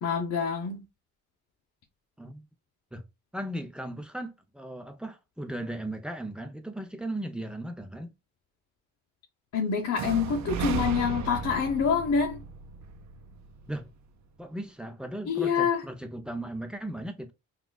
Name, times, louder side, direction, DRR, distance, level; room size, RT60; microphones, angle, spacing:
voice 1, 0.0-0.8 9.5-12.4 15.3-15.8, left 6 dB, 55° left, 0.9 m, -26 dB
voice 2, 3.3-8.1 13.7-13.9 14.4-17.3, right 1 dB, 5° right, 0.7 m, -37 dB
sound 1, 9.9-13.9, right 6 dB, 65° right, 0.7 m, -35 dB
5.9 x 2.5 x 2.3 m
cardioid pair, 120°, 30 cm